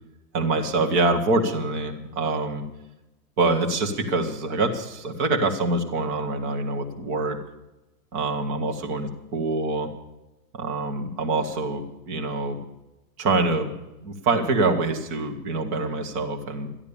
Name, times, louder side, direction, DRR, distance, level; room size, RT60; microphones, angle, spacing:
voice 1, 0.3-2.6 3.4-7.4 8.1-9.1 9.3-9.9 10.5-12.6 13.2-13.7 14.0-16.7, right 3 dB, 25° right, 4 dB, 1.2 m, -25 dB
12.5 x 11.5 x 6.9 m, 0.97 s
supercardioid pair, 170°, 49 cm